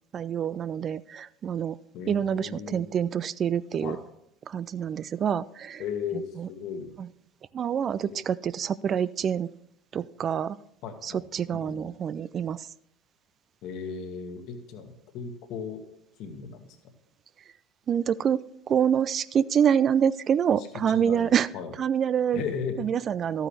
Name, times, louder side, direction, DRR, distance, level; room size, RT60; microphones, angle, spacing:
voice 1, 0.1-1.8 2.1-4.0 4.5-5.8 6.4-6.5 7.5-9.5 9.9-10.6 11.0-12.7 17.9-21.5 21.8-22.4 22.8-23.5, right 8 dB, 40° right, 18 dB, 0.3 m, -26 dB
voice 2, 1.9-2.9 3.8-4.1 5.8-6.9 8.1-8.2 10.8-11.2 11.5-11.9 13.6-15.8 16.2-16.8 20.6-21.7 22.3-22.9, left 6 dB, 55° left, 6 dB, 1.5 m, -36 dB
12.5 x 9.0 x 3.3 m, 0.74 s
figure-of-eight pair, 65°, 0 cm